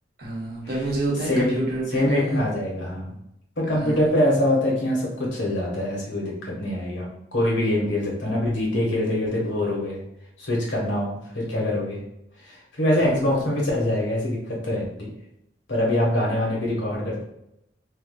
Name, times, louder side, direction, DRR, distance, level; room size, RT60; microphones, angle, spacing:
voice 1, 0.2-2.4 3.7-4.1 13.0-13.4, right 2 dB, 55° right, -4 dB, 1.0 m, -29 dB
voice 2, 1.9-3.1 3.6-10.0 10.4-12.0 12.5-15.1 15.7-17.2, left 1 dB, 80° left, -3 dB, 1.2 m, -24 dB
3.3 x 2.6 x 2.2 m, 0.78 s
head